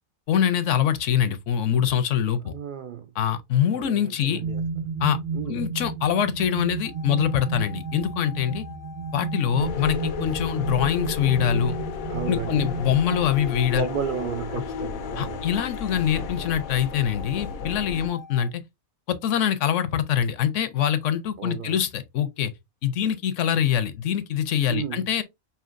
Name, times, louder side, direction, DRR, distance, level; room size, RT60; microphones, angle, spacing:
voice 1, 0.3-2.5 3.2-4.4 5.0-5.2 5.5-8.6 9.1-11.7 12.3-13.9 15.2-18.6 19.1-22.5 22.8-25.2, left 9 dB, 70° left, 0.9 m, -24 dB
voice 2, 2.4-3.1 3.7-4.9 5.3-5.7 12.1-12.6 13.7-15.4 21.4-21.8 24.7-25.1, right 7 dB, 90° right, 0.4 m, -33 dB
sound 1, 4.4-13.2, right 4 dB, 45° right, 1.1 m, -32 dB
sound 2, 6.8-18.5, left 6 dB, 30° left, 0.3 m, -45 dB
sound 3, 9.6-18.1, left 6 dB, 90° left, 1.1 m, -34 dB
5.6 x 2.7 x 2.5 m
omnidirectional pair, 1.4 m